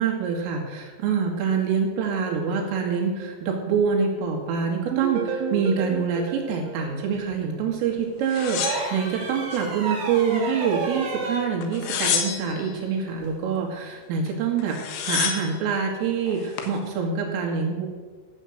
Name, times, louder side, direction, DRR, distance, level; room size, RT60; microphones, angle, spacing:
voice 1, 0.0-17.9, right 6 dB, 90° right, 0 dB, 4.6 m, -26 dB
sound 1, 4.9-7.9, right 6 dB, 75° right, 3.6 m, -32 dB
sound 2, 8.3-9.7 10.1-10.9 11.6-12.7 14.3-14.4 14.6-15.6 16.3-16.8, left 8 dB, 80° left, 3.8 m, -29 dB
sound 3, 8.6-11.5 13.2-13.4, right 4 dB, 50° right, 1.8 m, -31 dB
14.5 x 7.1 x 7.8 m, 1.5 s
omnidirectional pair, 5.7 m